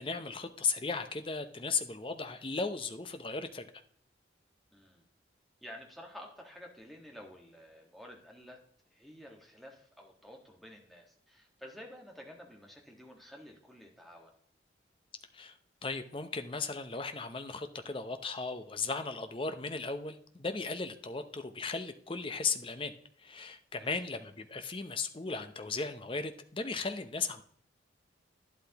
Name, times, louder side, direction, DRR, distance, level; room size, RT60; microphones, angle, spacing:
voice 1, 0.0-3.7 15.3-15.6 15.8-22.9 23.2-27.4, left 4 dB, 25° left, 8 dB, 0.6 m, -36 dB
voice 2, 4.7-5.0 5.6-8.6 8.9-14.3 23.7-24.0, equal, ahead, -1 dB, 1.5 m, -51 dB
11.5 x 10.5 x 2.9 m, 0.63 s
head